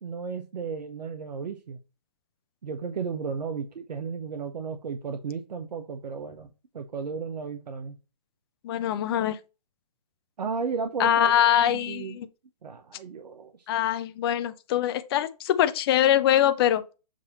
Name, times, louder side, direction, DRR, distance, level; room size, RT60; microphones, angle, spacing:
voice 1, 0.0-1.8 2.6-7.9 10.4-12.2 12.6-13.7, right 5 dB, 75° right, 0.9 m, -34 dB
voice 2, 8.6-9.4 11.0-12.3 13.7-16.9, left 11 dB, 35° left, 0.7 m, -23 dB
7.5 x 2.8 x 5.5 m
hypercardioid pair, 145°, 21 cm